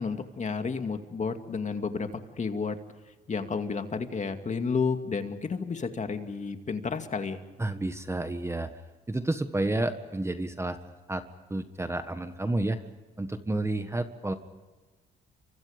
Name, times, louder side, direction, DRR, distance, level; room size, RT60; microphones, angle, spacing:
voice 1, 0.0-2.8 3.3-7.4, left 5 dB, 35° left, 7 dB, 2.3 m, -31 dB
voice 2, 7.6-8.7 9.1-11.2 11.5-12.8 13.2-14.3, right 2 dB, 15° right, 9 dB, 1.5 m, -30 dB
29.0 x 25.0 x 5.2 m, 1.3 s
cardioid pair, 90°, 20 cm